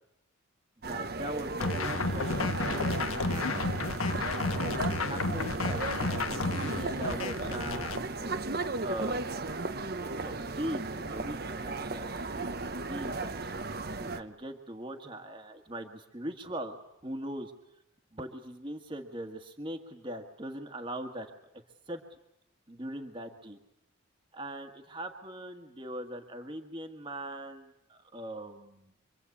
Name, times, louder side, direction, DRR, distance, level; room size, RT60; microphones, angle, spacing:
sound 1, 0.8-14.2, right 3 dB, 45° right, 1.0 m, -35 dB
voice 1, 0.9-3.9 4.9-7.9 8.8-9.4 10.2-13.5 14.0-16.8 17.0-17.5 18.1-21.3 21.9-22.0 22.7-23.6 24.3-28.9, right 1 dB, 25° right, 4 dB, 1.7 m, -41 dB
sound 2, 1.6-8.0, left 3 dB, 85° left, 1.5 m, -32 dB
25.5 x 25.0 x 8.6 m, 0.86 s
head